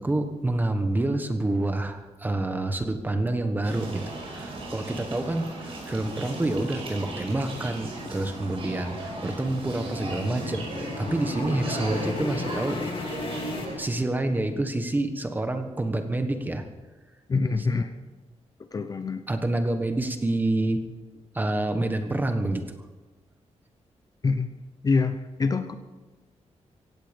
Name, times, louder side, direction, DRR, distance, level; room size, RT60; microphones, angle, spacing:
voice 1, 0.0-13.1 13.8-16.6 19.3-20.8 21.3-22.6, right 2 dB, 15° right, 7 dB, 1.3 m, -28 dB
sound 1, 3.6-13.7, right 2 dB, 50° right, 5.3 m, -37 dB
sound 2, 8.1-14.5, left 3 dB, 50° left, 2.2 m, -36 dB
voice 2, 17.3-17.9 18.6-19.3 24.2-24.5 24.8-25.8, left 4 dB, 30° left, 9 dB, 0.8 m, -25 dB
16.5 x 16.0 x 5.3 m, 1.2 s
wide cardioid pair, 175°, 12 cm